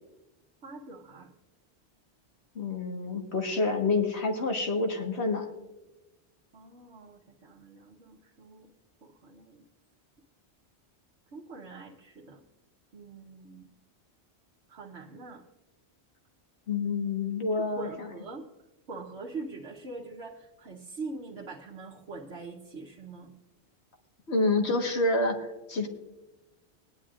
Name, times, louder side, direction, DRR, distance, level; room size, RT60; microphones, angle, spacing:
voice 1, 0.6-1.3 6.5-8.7 9.0-9.7 11.3-12.4 12.9-13.7 14.7-15.4 17.5-18.4 18.9-23.3, right 3 dB, 85° right, -4 dB, 1.4 m, -43 dB
voice 2, 2.6-5.5 16.7-17.9 24.3-25.9, left 3 dB, 75° left, 3 dB, 1.8 m, -28 dB
19.0 x 10.5 x 2.5 m, 1.0 s
omnidirectional pair, 1.1 m